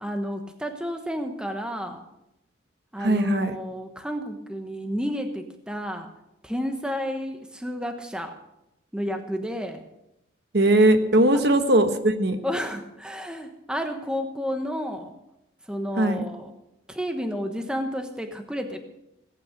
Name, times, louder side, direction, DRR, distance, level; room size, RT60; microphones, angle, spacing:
voice 1, 0.0-2.0 2.9-6.1 6.4-8.4 8.9-9.8 12.4-15.1 15.7-16.5 16.9-18.8, equal, 5° right, 5 dB, 1.1 m, -31 dB
voice 2, 3.0-3.6 10.5-12.4 16.0-16.2, right 1 dB, 55° right, 8 dB, 1.3 m, -20 dB
18.5 x 9.2 x 6.6 m, 0.88 s
head